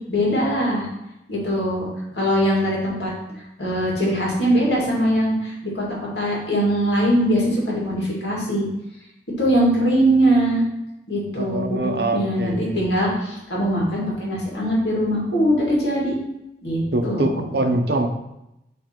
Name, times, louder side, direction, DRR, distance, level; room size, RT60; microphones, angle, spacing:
voice 1, 0.1-0.9 1.3-1.9 2.1-3.1 3.6-5.8 6.2-8.7 9.4-10.6 11.1-16.1 16.6-17.5, equal, 70° left, -4 dB, 2.2 m, -21 dB
voice 2, 11.4-12.8 16.9-18.1, right 2 dB, 60° right, 6 dB, 0.7 m, -24 dB
7.5 x 3.3 x 4.4 m, 0.88 s
head